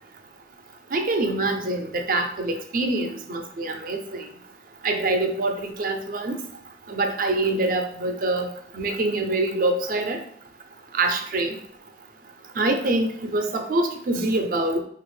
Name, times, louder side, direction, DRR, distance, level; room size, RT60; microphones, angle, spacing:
voice 1, 0.9-4.3 4.8-6.4 6.9-10.2 10.9-11.6 12.6-14.8, right 2 dB, 50° right, 5 dB, 0.4 m, -25 dB
3.4 x 2.4 x 3.1 m, 0.63 s
head